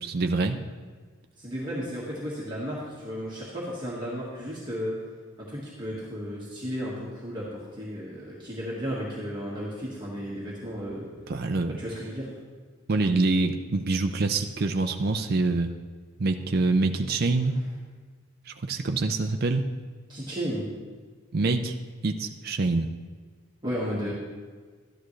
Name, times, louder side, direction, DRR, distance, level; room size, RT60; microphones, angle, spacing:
voice 1, 0.0-0.6 11.3-11.7 12.9-15.7 16.2-17.6 18.5-19.7 21.3-21.8 22.0-22.9, right 3 dB, 50° right, 5 dB, 0.5 m, -25 dB
voice 2, 1.4-5.0 5.5-11.1 11.8-12.3 20.1-20.7 23.6-24.1, equal, 20° right, -6 dB, 1.6 m, -34 dB
13.0 x 10.5 x 3.2 m, 1.5 s
head